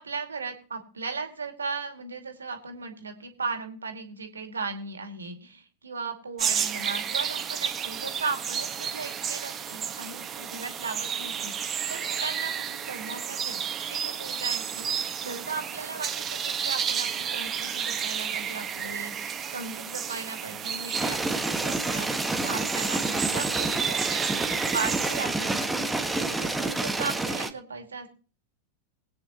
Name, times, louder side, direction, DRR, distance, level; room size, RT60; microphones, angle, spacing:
voice 1, 0.0-13.6 13.9-24.2 24.7-28.1, right 4 dB, 75° right, 6 dB, 2.3 m, -37 dB
sound 1, 6.4-25.2, right 8 dB, 25° right, 1.6 m, -32 dB
sound 2, 20.9-27.5, right 2 dB, 5° right, 1.6 m, -28 dB
21.5 x 9.5 x 3.0 m, 0.38 s
figure-of-eight pair, 90°, 0 cm